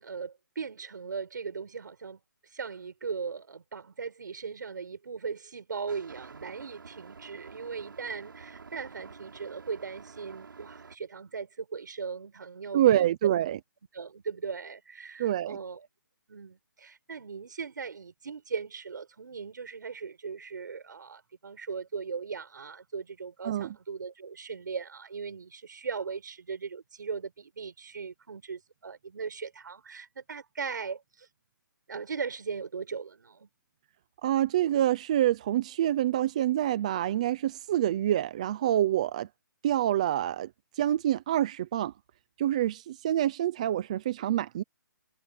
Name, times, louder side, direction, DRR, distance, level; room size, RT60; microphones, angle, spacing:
voice 1, 0.0-2.2 2.5-13.2 13.9-15.9 16.3-31.3 31.9-33.5, right 5 dB, 65° right, 6.6 m, -38 dB
sound 1, 5.9-11.0, right 5 dB, 85° right, 7.5 m, -49 dB
voice 2, 12.7-13.6 15.2-15.6 23.4-23.7 34.2-39.3 39.6-40.5 40.8-41.9 42.4-44.6, right 12 dB, 20° right, 0.7 m, -26 dB
hypercardioid pair, 175°, 11 cm